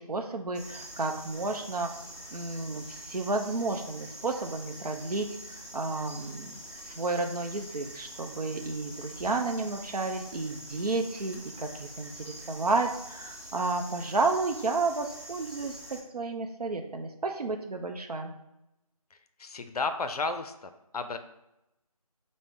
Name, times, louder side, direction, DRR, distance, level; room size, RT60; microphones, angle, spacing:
voice 1, 0.0-1.9 2.3-18.3, right 3 dB, 85° right, 4 dB, 0.5 m, -32 dB
sound 1, 0.5-16.0, right 1 dB, 45° right, 1.2 m, -45 dB
voice 2, 19.1-21.2, left 4 dB, 80° left, 9 dB, 0.4 m, -33 dB
5.3 x 2.1 x 3.3 m, 0.88 s
figure-of-eight pair, 170°, 19 cm